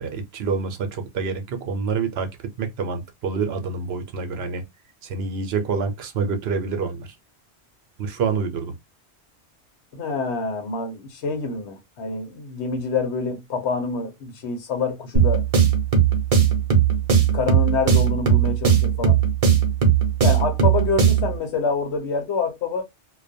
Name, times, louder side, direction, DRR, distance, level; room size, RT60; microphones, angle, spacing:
voice 1, 0.0-2.3 2.6-4.6 5.0-7.1 8.0-8.7, right 5 dB, 70° right, 0.8 m, -27 dB
voice 2, 9.9-15.4 17.3-19.2 20.2-22.8, left 4 dB, 75° left, 1.0 m, -26 dB
sound 1, 15.1-21.4, right 8 dB, 40° right, 0.7 m, -18 dB
2.3 x 2.2 x 2.5 m
omnidirectional pair, 1.1 m